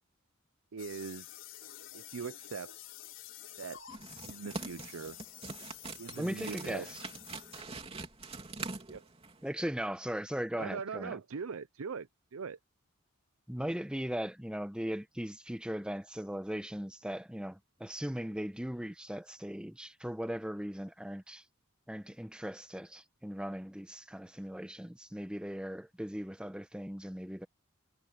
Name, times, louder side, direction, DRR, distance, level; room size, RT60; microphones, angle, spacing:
voice 1, 0.7-1.4 1.9-2.7 3.6-3.8 4.3-5.2 6.0-6.9 8.9-9.0 10.6-12.6, right 5 dB, 90° right, 0.6 m, -41 dB
sound 1, 0.8-8.8, left 12 dB, 60° left, 4.2 m, -50 dB
sound 2, 3.9-9.5, right 3 dB, 30° right, 3.2 m, -44 dB
voice 2, 6.2-7.0 9.4-11.2 13.5-21.4 21.9-27.5, equal, 5° right, 0.9 m, -38 dB
head